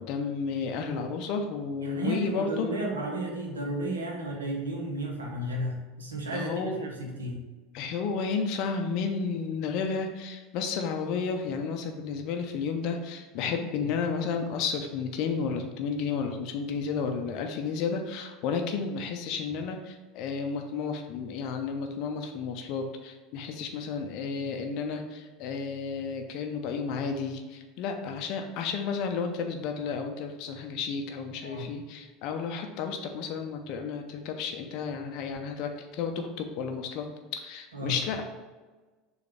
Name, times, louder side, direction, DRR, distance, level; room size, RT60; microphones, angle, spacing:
voice 1, 0.0-2.7 6.3-6.9 7.7-37.1 37.3-38.2, left 5 dB, 50° left, 5 dB, 0.4 m, -32 dB
voice 2, 1.8-7.4 31.4-31.7 37.7-38.0, right 1 dB, 75° right, 0 dB, 0.8 m, -33 dB
6.5 x 2.4 x 3.3 m, 1.3 s
figure-of-eight pair, 75°, 0 cm